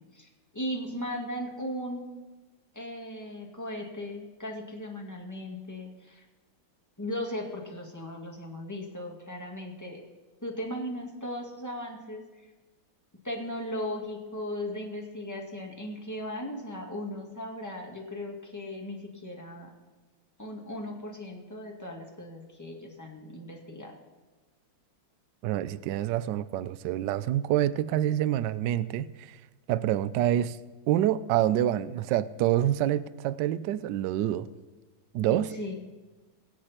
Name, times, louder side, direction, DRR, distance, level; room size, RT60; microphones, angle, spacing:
voice 1, 0.1-2.1 2.7-6.2 7.0-10.0 10.4-12.2 13.2-19.7 20.4-23.9 35.3-35.7, left 1 dB, 10° left, 1.9 m, -37 dB
voice 2, 25.4-29.4 29.7-30.6 30.9-34.5 35.1-35.6, right 12 dB, 75° right, 1.1 m, -27 dB
23.5 x 8.3 x 4.3 m
omnidirectional pair, 2.2 m